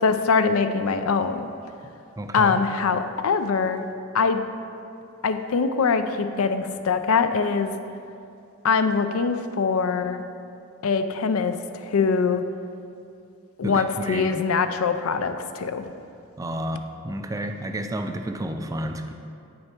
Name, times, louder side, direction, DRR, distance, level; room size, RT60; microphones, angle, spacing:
voice 1, 0.0-1.4 2.3-3.8 4.1-4.4 5.2-7.7 8.6-10.2 10.8-12.4 13.6-15.9, left 5 dB, 90° left, 9 dB, 0.5 m, -23 dB
voice 2, 2.2-2.6 13.6-14.3 16.4-19.1, right 1 dB, 15° right, 6 dB, 0.3 m, -31 dB
8.1 x 6.4 x 4.4 m, 2.5 s
head